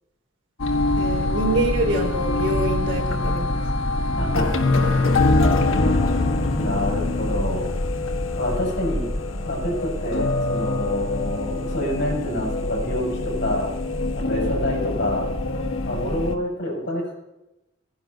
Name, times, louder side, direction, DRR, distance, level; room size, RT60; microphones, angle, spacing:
sound 1, 0.6-16.3, left 2 dB, 80° left, 1.5 m, -24 dB
voice 1, 1.0-3.6, right 1 dB, 65° right, 0 dB, 4.0 m, -25 dB
voice 2, 4.2-4.5 6.6-7.7 8.3-9.0 9.5-13.7 14.1-15.3 15.8-17.1, left 1 dB, 60° left, -1 dB, 6.5 m, -27 dB
17.5 x 10.5 x 5.3 m, 0.92 s
head